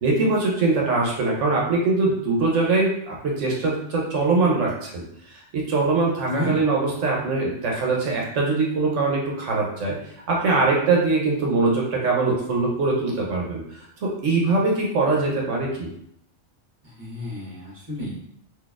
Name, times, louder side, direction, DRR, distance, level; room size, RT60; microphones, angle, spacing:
voice 1, 0.0-5.0 5.3-9.9 10.3-15.9, right 3 dB, 75° right, -2 dB, 1.1 m, -22 dB
voice 2, 6.3-6.6 17.0-18.1, left 1 dB, 30° right, -6 dB, 1.3 m, -30 dB
4.0 x 2.7 x 2.3 m, 0.70 s
omnidirectional pair, 1.3 m